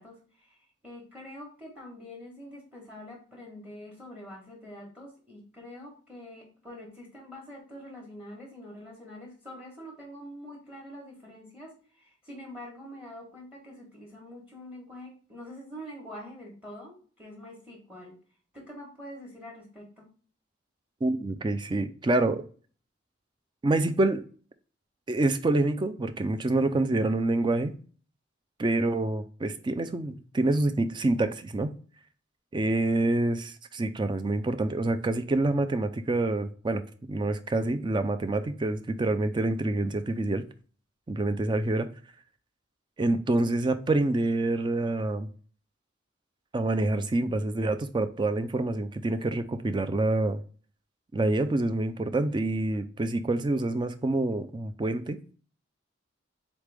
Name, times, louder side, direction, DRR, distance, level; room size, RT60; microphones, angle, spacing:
voice 1, 0.0-18.2 18.5-20.1, left 1 dB, 5° right, 1.1 m, -45 dB
voice 2, 21.0-22.4 23.6-24.2 25.1-27.7 28.6-31.7 32.5-36.8 37.1-40.4 41.1-41.9 43.0-45.3 46.5-50.4 51.1-55.3, right 2 dB, 25° right, 0.3 m, -27 dB
4.0 x 3.2 x 3.3 m
head